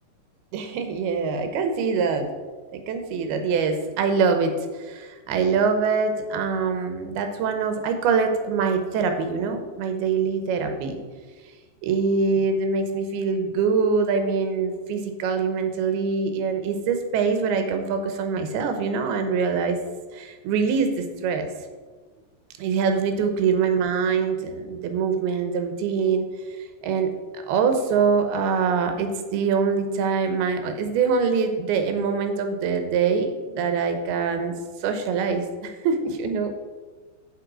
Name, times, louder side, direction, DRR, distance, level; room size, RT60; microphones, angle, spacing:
voice 1, 0.5-2.3 2.7-4.5 4.8-11.0 11.8-19.8 20.1-21.5 22.6-26.3 26.8-34.5 34.8-36.5, right 5 dB, 75° right, 6 dB, 2.8 m, -24 dB
8.8 x 7.5 x 4.9 m, 1.4 s
omnidirectional pair, 4.6 m